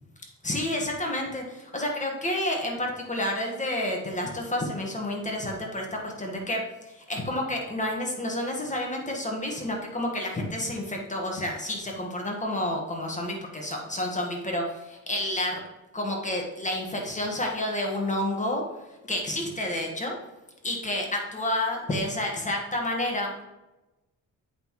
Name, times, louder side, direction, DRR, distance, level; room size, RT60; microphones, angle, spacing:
voice 1, 0.4-6.6 6.9-15.6 15.9-18.6 19.1-20.1 20.6-23.5, left 1 dB, 20° left, 0 dB, 1.5 m, -30 dB
8.0 x 5.5 x 3.1 m, 1.0 s
cardioid pair, 110°, 34 cm